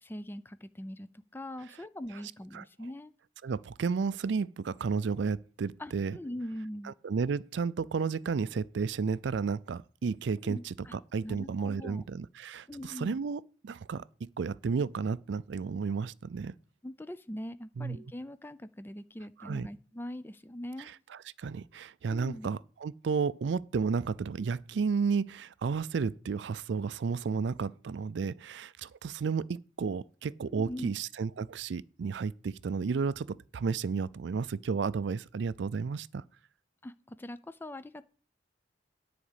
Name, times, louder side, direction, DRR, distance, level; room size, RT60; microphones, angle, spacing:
voice 1, 0.0-3.1 5.8-6.9 10.4-11.0 11.2-12.0 12.7-13.2 16.8-20.9 22.1-22.5 30.5-30.9 36.8-38.1, left 1 dB, 10° left, 0.4 m, -42 dB
voice 2, 3.4-6.2 6.8-16.5 17.8-18.0 19.4-19.7 21.1-36.2, right 5 dB, 70° right, 0.4 m, -32 dB
10.0 x 4.9 x 8.0 m
head